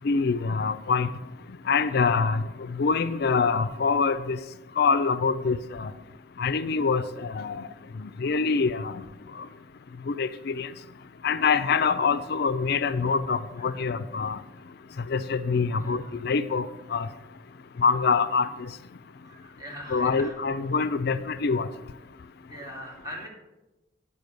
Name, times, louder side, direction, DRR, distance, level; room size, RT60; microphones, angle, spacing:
voice 1, 0.0-1.1 1.7-2.4 2.8-4.4 4.8-5.9 6.4-7.6 8.0-8.9 10.1-10.7 11.2-14.4 15.1-17.1 17.8-18.5 19.9-21.7, left 5 dB, 60° left, 12 dB, 0.4 m, -25 dB
voice 2, 15.7-16.1 19.2-20.3 22.5-23.3, equal, 20° right, -3 dB, 2.6 m, -41 dB
10.5 x 5.3 x 6.7 m, 1.0 s
head